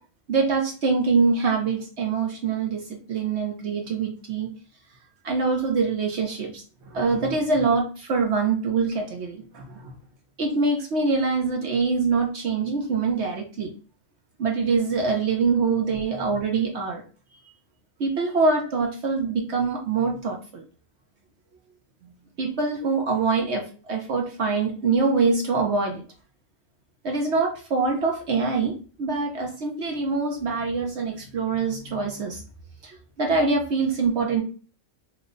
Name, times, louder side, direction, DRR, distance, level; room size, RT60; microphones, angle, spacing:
voice 1, 0.3-4.5 5.2-9.9 10.4-13.7 14.4-17.0 18.0-20.6 22.4-26.0 27.0-28.7 29.0-32.4 32.8-34.4, right 4 dB, 60° right, 1 dB, 0.9 m, -24 dB
3.0 x 2.2 x 3.8 m, 0.37 s
omnidirectional pair, 1.4 m